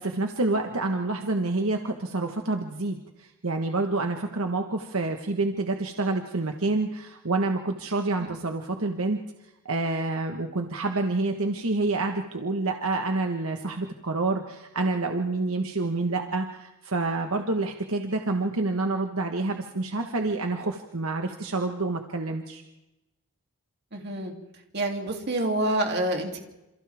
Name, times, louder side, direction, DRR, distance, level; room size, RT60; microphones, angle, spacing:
voice 1, 0.0-9.2 9.6-22.6, right 2 dB, 70° right, 4 dB, 1.4 m, -28 dB
voice 2, 23.9-24.3 24.7-26.4, right 1 dB, 50° right, 2 dB, 3.0 m, -27 dB
28.0 x 28.0 x 3.6 m, 0.97 s
head